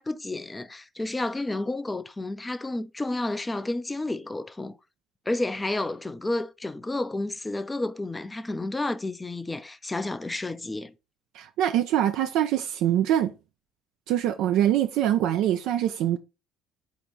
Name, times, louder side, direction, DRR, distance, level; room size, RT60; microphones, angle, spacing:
voice 1, 0.0-4.8 5.3-10.9, left 2 dB, 15° left, 0.4 m, -31 dB
voice 2, 11.3-13.3 14.1-16.2, right 11 dB, 65° right, 0.3 m, -24 dB
4.2 x 2.8 x 4.5 m
figure-of-eight pair, 55°, 0 cm